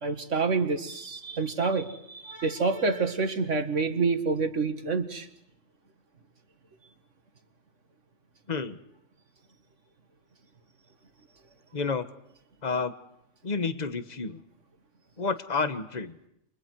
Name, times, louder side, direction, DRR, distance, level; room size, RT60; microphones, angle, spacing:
voice 1, 0.0-5.3, right 4 dB, 60° right, 7 dB, 2.2 m, -27 dB
voice 2, 8.5-8.8 11.7-12.1 12.6-12.9 13.4-14.4 15.2-16.2, left 4 dB, 30° left, 10 dB, 1.4 m, -30 dB
29.5 x 27.0 x 4.7 m, 0.78 s
omnidirectional pair, 1.4 m